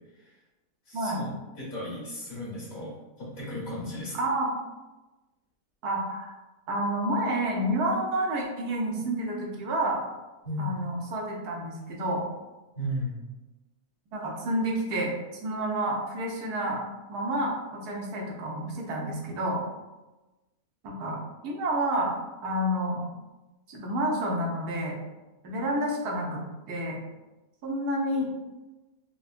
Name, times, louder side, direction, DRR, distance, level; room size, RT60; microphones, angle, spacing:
voice 1, 0.9-1.3 1.6-4.2 10.4-10.7 12.8-13.2, left 1 dB, 60° left, -8 dB, 2.1 m, -35 dB
voice 2, 4.1-4.5 5.8-6.3 6.7-10.0 10.6-12.2 14.1-15.1 15.4-16.8 17.1-19.6 20.8-21.2 21.4-22.2 22.4-23.1 23.7-25.0 25.4-27.0 27.6-28.3, right 1 dB, 90° right, -1 dB, 1.3 m, -29 dB
4.6 x 2.2 x 2.4 m, 1.1 s
omnidirectional pair, 1.6 m